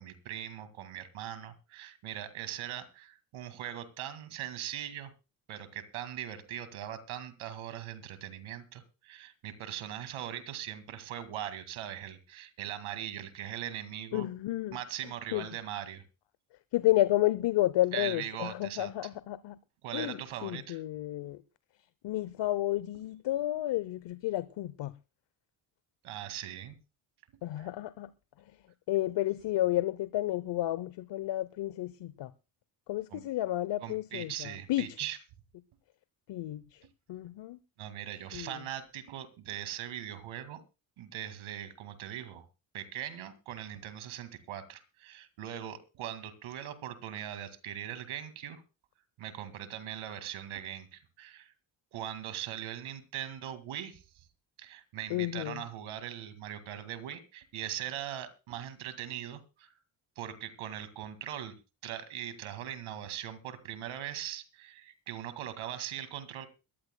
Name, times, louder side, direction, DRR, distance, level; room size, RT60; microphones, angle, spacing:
voice 1, 0.0-5.1 5.5-14.3 14.7-16.0 17.9-18.9 19.8-20.8 26.0-26.8 27.6-27.7 33.1-33.2 33.8-35.2 37.8-40.6 41.0-42.5 42.7-48.6 49.2-51.5 51.9-54.3 54.6-59.7 60.2-61.5 61.8-66.5, right 11 dB, 80° right, 2.1 m, -40 dB
voice 2, 14.1-14.8 15.3-15.4 16.7-19.6 19.9-21.4 22.0-24.9 27.4-28.1 28.9-32.3 32.9-34.9 36.3-36.8 37.1-37.6 38.3-38.6 55.1-55.6, left 15 dB, 60° left, 0.7 m, -31 dB
22.0 x 14.5 x 2.2 m
supercardioid pair, 70°, 48 cm